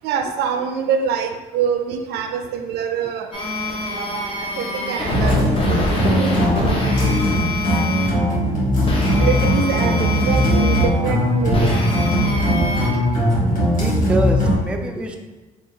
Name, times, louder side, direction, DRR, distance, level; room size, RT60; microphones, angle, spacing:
voice 1, 0.0-3.3 3.9-7.6 9.2-11.8 12.6-13.0, right 7 dB, 75° right, 6 dB, 0.4 m, -26 dB
sound 1, 3.3-8.1 8.9-10.9 11.5-12.9, left 2 dB, 35° left, 0.8 m, -25 dB
sound 2, 5.1-14.5, equal, 50° left, 1.4 m, -19 dB
voice 2, 13.8-15.2, right 1 dB, 5° right, 2 dB, 0.3 m, -25 dB
3.8 x 2.4 x 3.7 m, 1.1 s
cardioid pair, 110°, 17 cm